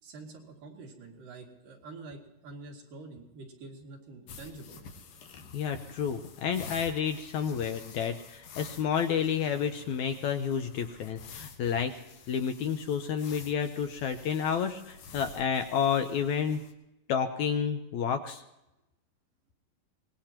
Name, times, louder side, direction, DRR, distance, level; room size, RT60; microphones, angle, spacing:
voice 1, 0.0-4.8, right 3 dB, 75° right, -1 dB, 4.1 m, -47 dB
sound 1, 4.3-16.7, left 5 dB, 90° left, 3.1 m, -49 dB
voice 2, 5.5-11.9 12.3-16.6 17.1-18.4, left 7 dB, 75° left, 7 dB, 1.9 m, -30 dB
24.0 x 20.0 x 3.0 m, 0.92 s
omnidirectional pair, 3.9 m